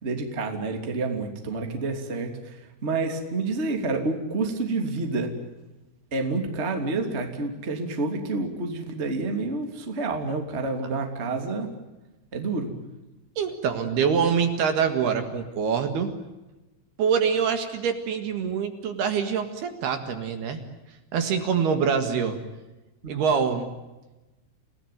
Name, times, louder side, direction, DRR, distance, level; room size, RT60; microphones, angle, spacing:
voice 1, 0.0-5.3 6.1-11.7 12.3-12.7 23.1-23.2, right 3 dB, 20° right, 4 dB, 2.2 m, -29 dB
voice 2, 13.4-16.1 17.0-20.6 21.1-22.4 23.1-23.7, right 6 dB, 65° right, 7 dB, 3.5 m, -25 dB
29.5 x 18.0 x 9.3 m, 1.1 s
omnidirectional pair, 5.5 m